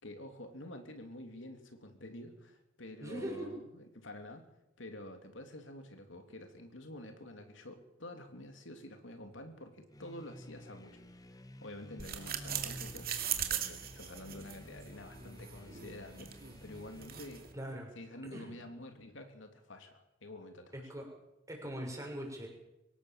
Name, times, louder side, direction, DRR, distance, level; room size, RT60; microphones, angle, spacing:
voice 1, 0.0-4.5 4.8-13.1 13.5-17.5 17.9-20.9, left 1 dB, 70° left, 5 dB, 3.0 m, -49 dB
voice 2, 3.0-3.5 17.5-17.9 18.2-18.5 20.9-21.1 21.5-22.5, equal, 15° right, 1 dB, 6.5 m, -41 dB
sound 1, 9.9-17.7, left 1 dB, 20° left, 1.1 m, -52 dB
sound 2, 12.0-17.5, right 9 dB, 50° right, 2.6 m, -40 dB
25.0 x 17.5 x 7.5 m, 0.90 s
head